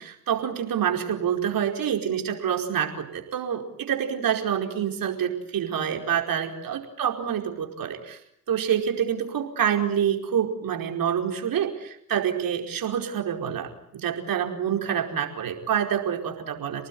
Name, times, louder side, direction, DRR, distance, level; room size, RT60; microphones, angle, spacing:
voice 1, 0.0-8.2 8.5-16.9, right 9 dB, 50° right, 3 dB, 4.9 m, -27 dB
30.0 x 19.0 x 9.5 m, 0.74 s
hypercardioid pair, 55°, 43 cm